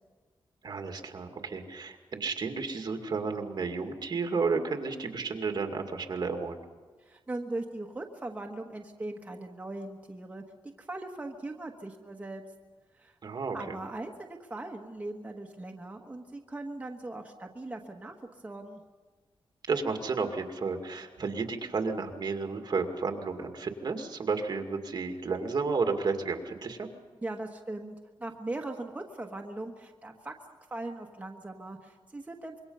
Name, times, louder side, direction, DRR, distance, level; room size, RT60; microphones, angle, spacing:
voice 1, 0.6-6.6 13.2-13.8 19.7-26.9, right 4 dB, 50° right, 5 dB, 2.2 m, -32 dB
voice 2, 7.0-10.4 10.8-12.4 13.0-13.1 13.5-18.2 18.4-18.8 27.2-30.3 30.7-32.6, right 2 dB, 15° right, 1 dB, 1.3 m, -39 dB
26.0 x 23.0 x 5.6 m, 1.4 s
wide cardioid pair, 155°, 9 cm